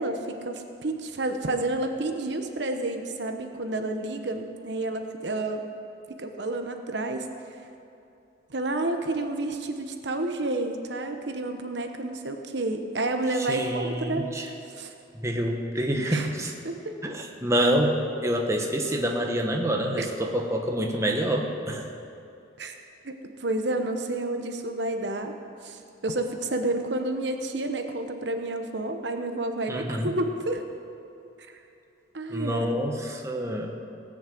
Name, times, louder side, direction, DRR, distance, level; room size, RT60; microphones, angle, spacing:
voice 1, 0.0-5.6 6.1-7.6 8.5-14.2 14.7-14.9 16.1-16.3 16.6-16.7 20.0-20.1 22.6-22.7 23.0-25.3 25.6-30.7 32.1-32.7, right 2 dB, 70° right, 5 dB, 1.1 m, -30 dB
voice 2, 13.3-14.5 15.1-16.5 17.0-21.9 29.7-30.1 32.3-33.7, right 1 dB, 15° right, 1 dB, 1.1 m, -27 dB
18.0 x 6.4 x 7.6 m, 2.7 s
head